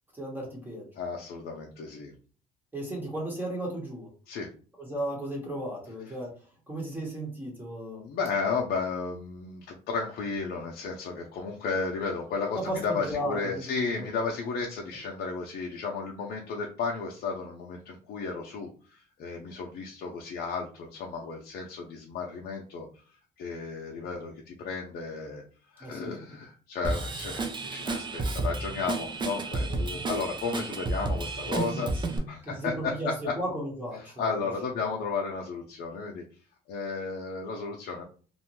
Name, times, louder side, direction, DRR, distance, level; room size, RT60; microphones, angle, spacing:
voice 1, 0.1-0.9 2.7-4.1 4.8-6.3 6.7-8.1 12.5-14.1 25.8-26.2 31.8-34.4 34.8-35.0, right 1 dB, 10° right, -3 dB, 1.0 m, -35 dB
voice 2, 1.0-2.1 4.3-4.5 8.0-22.9 23.4-25.4 25.7-33.3 34.0-36.2 36.7-38.0, left 4 dB, 70° left, -1 dB, 0.6 m, -33 dB
Drum kit / Drum, 26.8-32.2, right 3 dB, 25° right, 0.5 m, -31 dB
2.6 x 2.1 x 2.9 m, 0.40 s
cardioid pair, 110°, 17 cm